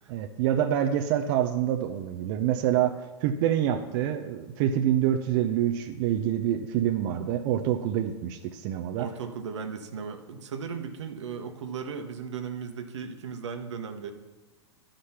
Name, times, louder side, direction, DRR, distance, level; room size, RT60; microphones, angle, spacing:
voice 1, 0.1-9.1, right 10 dB, 50° right, 5 dB, 0.7 m, -26 dB
voice 2, 9.0-14.1, right 6 dB, 80° right, 6 dB, 1.1 m, -36 dB
11.0 x 5.1 x 5.8 m, 1.1 s
hypercardioid pair, 115°, 15 cm